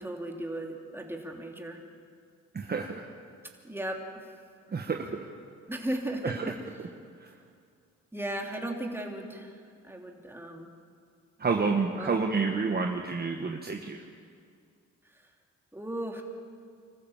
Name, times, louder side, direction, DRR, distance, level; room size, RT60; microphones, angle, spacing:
voice 1, 0.0-1.8 3.6-4.4 5.7-6.5 8.1-10.7 12.0-12.1 15.0-15.3 15.7-16.2, right 1 dB, 10° right, 1 dB, 3.0 m, -36 dB
voice 2, 2.5-3.1 4.7-5.3 6.2-6.5 7.2-7.3 11.4-14.0, right 4 dB, 30° right, 3 dB, 1.3 m, -29 dB
25.5 x 14.5 x 7.3 m, 2.2 s
cardioid pair, 90°, 30 cm